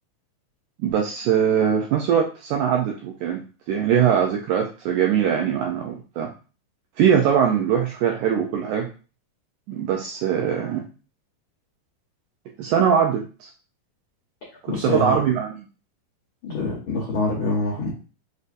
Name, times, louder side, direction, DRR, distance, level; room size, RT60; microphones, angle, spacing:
voice 1, 0.8-6.3 7.0-8.9 9.7-10.8 12.6-13.5 14.6-15.5, right 8 dB, 85° right, 1 dB, 1.7 m, -22 dB
voice 2, 14.7-15.2 16.4-17.9, left 2 dB, 90° left, -5 dB, 1.1 m, -25 dB
6.3 x 2.7 x 2.5 m, 0.35 s
omnidirectional pair, 4.0 m